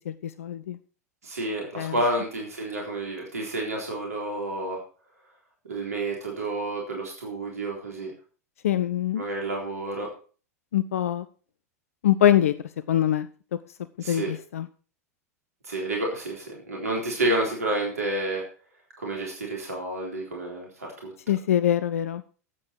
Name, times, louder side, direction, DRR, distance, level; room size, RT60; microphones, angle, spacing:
voice 1, 0.1-0.8 1.8-1.9 8.6-9.2 10.7-11.2 12.0-12.5 12.9-13.3 14.1-14.7 21.3-22.2, left 11 dB, 60° left, 14 dB, 0.6 m, -23 dB
voice 2, 1.2-4.8 5.6-8.1 9.2-10.1 14.0-14.3 15.6-18.4 19.0-21.1, right 1 dB, 70° right, 0 dB, 3.8 m, -30 dB
13.0 x 8.5 x 4.6 m, 0.39 s
figure-of-eight pair, 90°, 9 cm